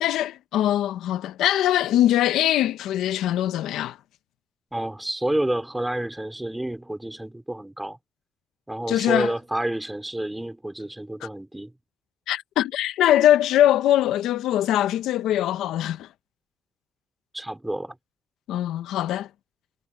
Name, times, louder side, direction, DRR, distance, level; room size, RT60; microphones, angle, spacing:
voice 1, 0.0-4.0 8.9-9.3 11.2-11.3 12.3-16.1 18.5-19.3, left 12 dB, 85° left, 0.7 m, -22 dB
voice 2, 4.7-8.0 8.7-11.7 17.3-18.0, right 1 dB, 10° right, 4.6 m, -29 dB
cardioid pair, 90°, 0 cm